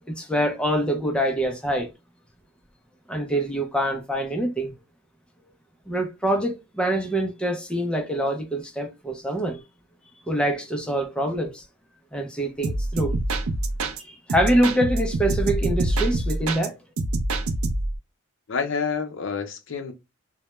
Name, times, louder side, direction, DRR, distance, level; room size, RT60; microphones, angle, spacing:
voice 1, 0.1-1.9 3.1-4.7 5.9-9.6 10.3-11.6 12.1-13.2 14.0-16.8, right 1 dB, 5° left, 0.4 m, -25 dB
sound 1, 12.6-14.0 14.3-16.7 17.0-18.0, right 2 dB, 75° right, 0.4 m, -26 dB
voice 2, 18.5-19.9, left 5 dB, 60° left, 0.5 m, -28 dB
2.2 x 2.1 x 2.9 m
head